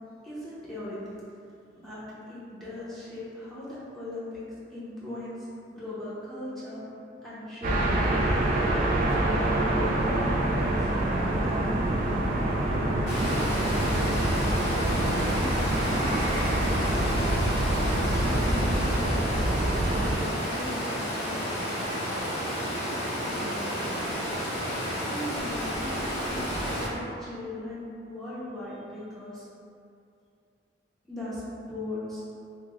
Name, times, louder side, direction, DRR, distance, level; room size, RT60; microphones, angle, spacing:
voice 1, 0.2-1.0 1.8-2.0 2.3-4.4 4.7-6.8 7.2-8.3 9.1-10.9 11.3-11.6 12.1-13.3 13.8-17.0 17.8-19.5 19.9-21.7 23.2-24.2 25.0-29.5 31.0-31.4 31.7-32.2, left 1 dB, ahead, -12 dB, 0.6 m, -39 dB
sound 1, 7.6-20.2, right 1 dB, 45° right, 0.4 m, -26 dB
Water, 13.1-26.9, equal, 40° left, 1.1 m, -31 dB
2.9 x 2.0 x 3.5 m, 2.5 s
head